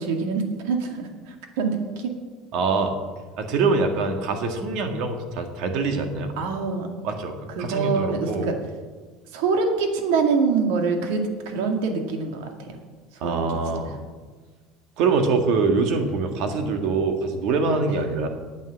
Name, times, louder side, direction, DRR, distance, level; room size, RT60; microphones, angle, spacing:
voice 1, 0.0-2.2 6.4-6.9 7.6-8.6 9.3-12.8 13.2-13.5 17.8-18.0, right 4 dB, 85° right, 4 dB, 2.1 m, -25 dB
voice 2, 2.5-2.9 3.4-6.4 7.0-8.5 13.2-14.0 15.0-18.3, right 4 dB, 55° right, 5 dB, 1.8 m, -24 dB
9.6 x 9.0 x 8.0 m, 1.4 s
cardioid pair, 155°, 0 cm